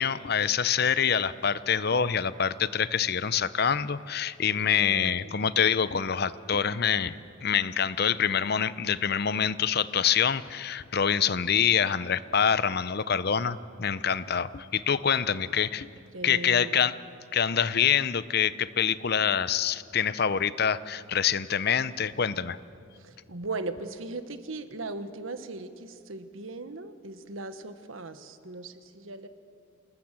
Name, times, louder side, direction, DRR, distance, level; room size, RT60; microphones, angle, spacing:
voice 1, 0.0-15.9 16.2-17.0 17.3-22.6, left 7 dB, 50° left, 15 dB, 0.7 m, -26 dB
voice 2, 4.5-5.4 15.2-15.6 16.1-16.9 23.0-29.3, right 3 dB, 85° right, 10 dB, 1.4 m, -39 dB
27.5 x 20.0 x 7.6 m, 2.4 s
head